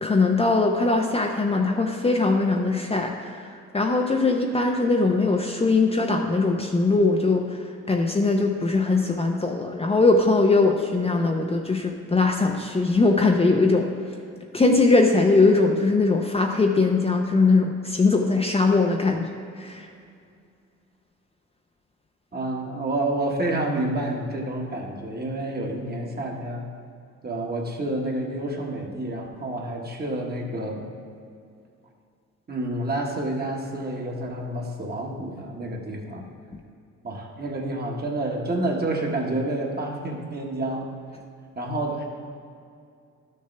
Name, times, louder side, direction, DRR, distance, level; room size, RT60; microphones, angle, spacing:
voice 1, 0.0-3.5 3.7-7.6 7.9-13.9 14.5-19.3 19.6-19.9, left 3 dB, 20° left, 2 dB, 0.6 m, -21 dB
voice 2, 22.3-26.6 27.2-30.8 32.5-36.2 37.0-40.9 41.5-42.0, right 1 dB, 30° right, 0 dB, 1.5 m, -29 dB
12.0 x 6.7 x 3.3 m, 2.4 s
cardioid pair, 90°, 30 cm